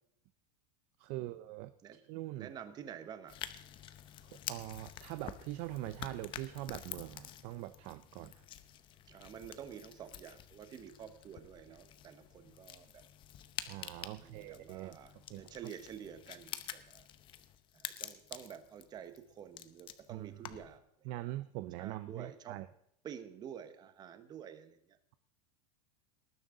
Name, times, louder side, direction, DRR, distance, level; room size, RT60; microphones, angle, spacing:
voice 1, 1.0-2.5 4.5-8.3 13.7-15.0 15.3-15.5 20.1-20.3 21.0-22.7, right 16 dB, 40° right, 13 dB, 0.5 m, -43 dB
voice 2, 2.4-3.4 9.1-13.0 14.1-17.1 17.7-21.3 21.8-22.6 23.0-25.0, right 8 dB, 20° right, 10 dB, 1.1 m, -49 dB
sound 1, 3.3-20.8, left 11 dB, 25° left, 0.8 m, -49 dB
19.0 x 10.5 x 3.8 m, 0.72 s
supercardioid pair, 165°, 19 cm